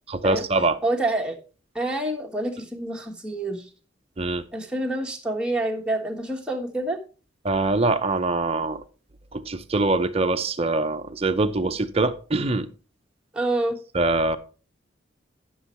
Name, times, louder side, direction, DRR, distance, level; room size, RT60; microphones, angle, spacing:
voice 1, 0.1-0.8 4.2-4.4 7.4-8.8 9.3-12.7 13.9-14.4, right 2 dB, 30° right, 0.7 m, -23 dB
voice 2, 0.8-1.4 1.7-3.7 4.5-7.0 13.3-13.8, right 1 dB, 5° right, 1.3 m, -27 dB
9.8 x 6.2 x 4.3 m
head